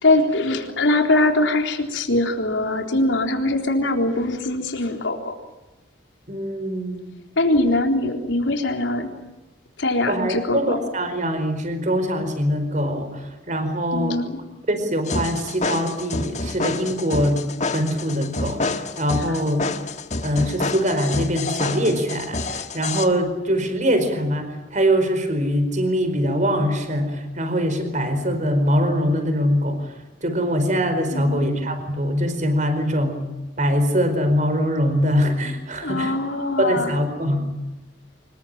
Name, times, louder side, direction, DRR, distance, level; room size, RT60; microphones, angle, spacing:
voice 1, 0.0-5.3 7.4-9.1 9.8-10.8 13.9-14.4 31.1-31.6 35.8-37.0, left 2 dB, 80° left, 3 dB, 3.9 m, -22 dB
voice 2, 6.3-7.1 10.1-14.2 14.7-17.4 17.7-19.7 20.2-29.9 30.2-33.2 33.6-36.1 36.6-37.5, equal, 40° right, 8 dB, 4.8 m, -23 dB
sound 1, 15.1-23.1, left 3 dB, 40° left, 1.7 m, -28 dB
25.5 x 21.5 x 9.0 m, 1.0 s
head